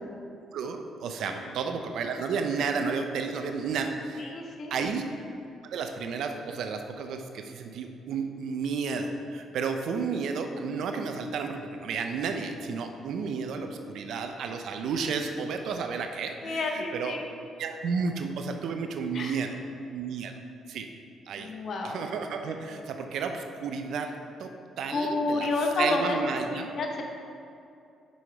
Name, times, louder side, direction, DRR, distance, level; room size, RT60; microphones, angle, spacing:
voice 1, 0.5-4.4 4.7-5.0 5.6-17.2 17.6-19.5 19.9-20.3 20.7-20.9 21.3-21.5 21.8-25.5 25.8-26.7, right 5 dB, 75° right, 5 dB, 0.6 m, -32 dB
voice 2, 4.2-4.9 16.4-17.3 19.1-19.4 21.3-22.0 24.9-26.2 26.5-27.0, left 2 dB, 55° left, 2 dB, 1.0 m, -30 dB
6.0 x 5.6 x 4.6 m, 2.5 s
cardioid pair, 90°, 0 cm